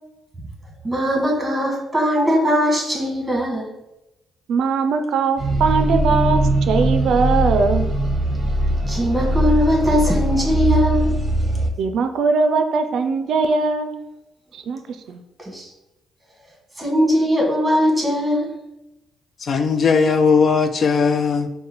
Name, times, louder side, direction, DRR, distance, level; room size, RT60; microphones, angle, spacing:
voice 1, 0.8-3.7 7.0-7.3 8.4-8.5 8.9-11.1 15.4-15.7 16.8-18.5, equal, 10° right, 1.5 m, -20 dB
voice 2, 4.5-7.9 11.8-13.9 14.5-14.8 15.1-15.2, right 4 dB, 70° right, 0.4 m, -20 dB
sound 1, 5.4-11.7, right 1 dB, 30° right, 0.7 m, -20 dB
voice 3, 19.4-21.5, left 5 dB, 50° left, 0.3 m, -18 dB
6.2 x 2.2 x 3.0 m
cardioid pair, 90°, 0 cm